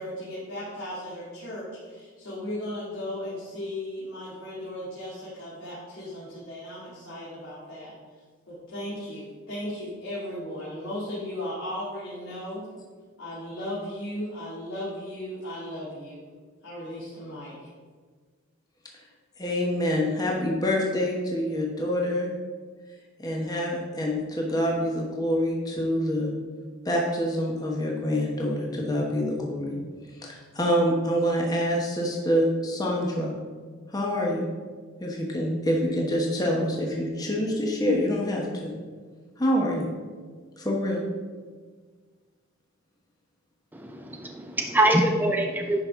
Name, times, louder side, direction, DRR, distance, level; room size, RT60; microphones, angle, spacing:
voice 1, 0.0-7.9 8.7-12.6 13.2-16.3 16.6-17.5, left 1 dB, 75° left, -9 dB, 2.5 m, -36 dB
voice 2, 19.4-22.3 23.2-26.3 26.8-29.8 30.2-33.3 33.9-34.5 35.0-38.7 39.4-39.9 40.6-41.0, equal, 20° left, -2 dB, 1.0 m, -26 dB
voice 3, 43.7-45.8, right 1 dB, 10° right, 3 dB, 0.4 m, -24 dB
10.5 x 5.3 x 3.6 m, 1.5 s
head